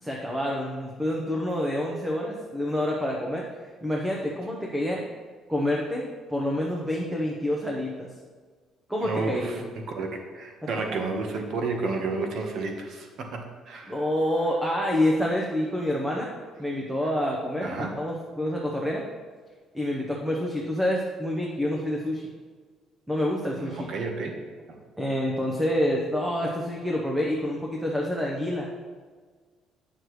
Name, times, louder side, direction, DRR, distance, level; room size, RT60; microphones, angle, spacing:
voice 1, 0.0-3.4 3.8-5.0 5.5-8.1 8.9-9.6 13.9-16.3 16.6-19.0 19.7-22.3 23.1-23.9 25.0-28.7, left 1 dB, 10° right, -1 dB, 0.8 m, -27 dB
voice 2, 9.0-14.0 17.6-18.0 23.6-24.3, right 3 dB, 60° right, 3 dB, 1.1 m, -31 dB
9.3 x 6.5 x 3.2 m, 1.5 s
cardioid pair, 140°, 0 cm